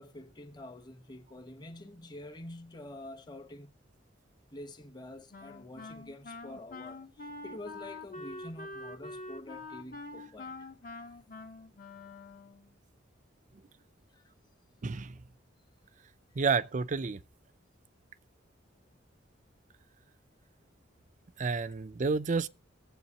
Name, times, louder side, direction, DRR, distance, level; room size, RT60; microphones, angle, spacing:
voice 1, 0.0-3.7 4.5-11.2 14.1-14.3 16.4-16.5, left 1 dB, 20° left, 1.1 m, -47 dB
Wind instrument woodwind instrument, 5.3-12.7, left 2 dB, 45° left, 1.0 m, -45 dB
voice 2, 14.8-15.2 16.4-17.2 21.4-22.5, right 4 dB, 40° right, 0.5 m, -30 dB
20.0 x 7.9 x 2.8 m
head